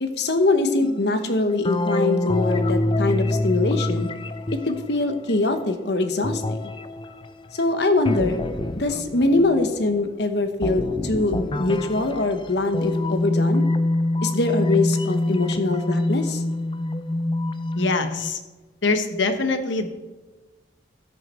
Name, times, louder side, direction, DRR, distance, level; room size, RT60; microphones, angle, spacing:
voice 1, 0.0-4.1 4.7-6.7 7.5-8.4 8.8-13.6 14.2-16.4, left 2 dB, 65° left, 8 dB, 1.1 m, -23 dB
sound 1, 0.8-5.6 6.2-10.0 10.6-18.3, left 1 dB, 25° left, 0.5 m, -26 dB
voice 2, 17.8-18.4 18.8-19.9, left 3 dB, 90° left, 8 dB, 1.1 m, -23 dB
14.0 x 6.6 x 4.4 m, 1.2 s
head